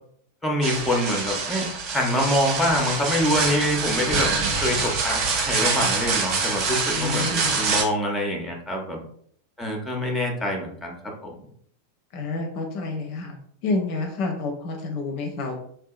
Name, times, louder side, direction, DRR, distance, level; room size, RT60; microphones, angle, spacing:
voice 1, 0.4-9.0 9.6-11.4, left 1 dB, 5° left, 1 dB, 0.7 m, -25 dB
sound 1, 0.6-7.8, right 4 dB, 35° right, 0.6 m, -25 dB
voice 2, 6.9-7.6 12.1-13.4 13.6-15.5, left 3 dB, 45° left, 2 dB, 0.5 m, -29 dB
3.4 x 2.7 x 2.3 m, 0.63 s
figure-of-eight pair, 90°, 0 cm